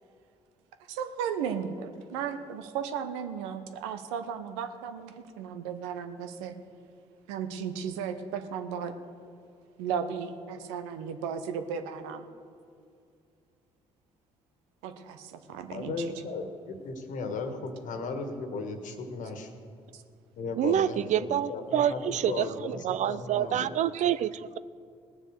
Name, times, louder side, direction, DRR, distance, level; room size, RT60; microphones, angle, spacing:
voice 1, 0.9-6.6 7.3-8.9 9.8-12.2 14.8-16.1 19.9-20.0, right 7 dB, 80° right, 8 dB, 0.9 m, -35 dB
voice 2, 15.7-19.5 20.4-22.0 22.3-23.7, left 3 dB, 60° left, 6 dB, 1.6 m, -36 dB
voice 3, 20.6-24.6, right 10 dB, 55° right, 16 dB, 0.5 m, -27 dB
18.5 x 7.3 x 6.7 m, 2.3 s
hypercardioid pair, 50°, 15 cm